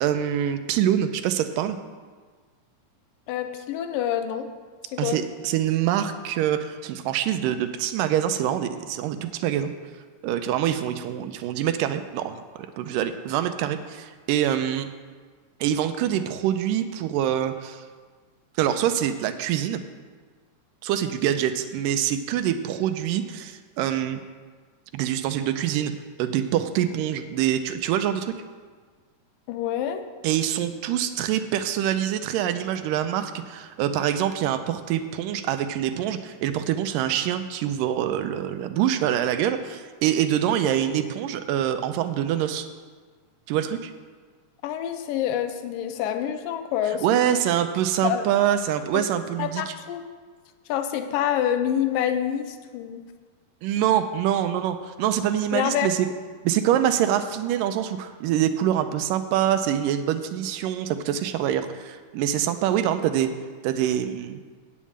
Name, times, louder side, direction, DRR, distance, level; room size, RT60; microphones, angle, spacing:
voice 1, 0.0-1.8 5.0-9.7 10.2-14.9 15.6-17.8 18.6-19.8 20.8-24.2 24.9-25.9 26.2-28.3 30.2-42.7 43.5-43.9 46.9-49.7 53.6-56.1 56.4-63.3 63.6-64.4, right 10 dB, 85° right, 10 dB, 2.2 m, -25 dB
voice 2, 3.3-4.5 4.9-5.2 29.5-30.1 44.6-47.3 48.0-48.3 48.9-49.0 49.4-50.0 50.7-53.0 55.5-55.9, left 10 dB, 80° left, 8 dB, 2.4 m, -27 dB
8.3 x 7.3 x 8.5 m, 1.5 s
omnidirectional pair, 3.9 m